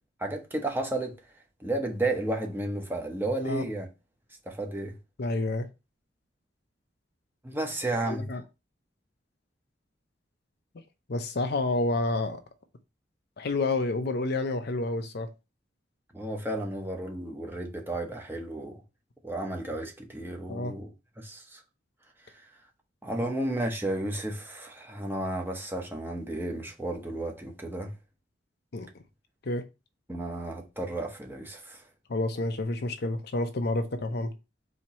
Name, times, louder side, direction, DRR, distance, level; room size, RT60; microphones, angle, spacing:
voice 1, 0.2-1.2 1.6-3.9 4.5-5.0 7.4-8.3 16.1-18.8 19.2-20.9 21.2-21.6 23.0-27.9 30.1-31.8, right 1 dB, 10° right, 0.9 m, -32 dB
voice 2, 5.2-5.7 8.0-8.4 11.1-12.4 13.4-15.3 20.5-20.7 23.2-23.3 28.7-28.9 29.5-29.6 32.1-34.3, left 2 dB, 60° left, 0.6 m, -29 dB
4.4 x 2.9 x 4.1 m
head